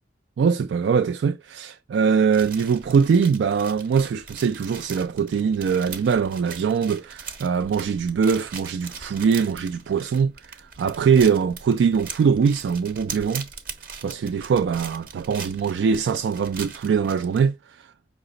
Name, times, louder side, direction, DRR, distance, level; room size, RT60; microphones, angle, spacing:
voice 1, 0.4-13.5 14.0-17.9, right 6 dB, 85° right, 0.3 m, -22 dB
sound 1, 2.3-17.4, right 5 dB, 50° right, 0.9 m, -40 dB
5.6 x 2.0 x 3.8 m
head